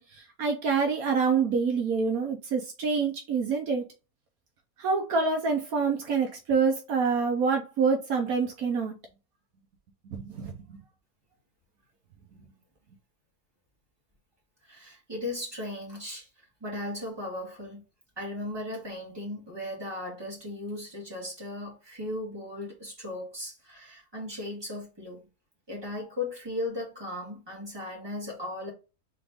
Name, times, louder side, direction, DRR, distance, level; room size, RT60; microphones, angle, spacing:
voice 1, 0.0-3.8 4.8-9.0 10.1-10.8, right 5 dB, 75° right, 1.3 m, -27 dB
voice 2, 14.6-16.3 16.6-17.8 18.2-25.3 25.7-28.7, left 1 dB, 15° right, 2.1 m, -37 dB
3.8 x 3.5 x 3.5 m
omnidirectional pair, 1.6 m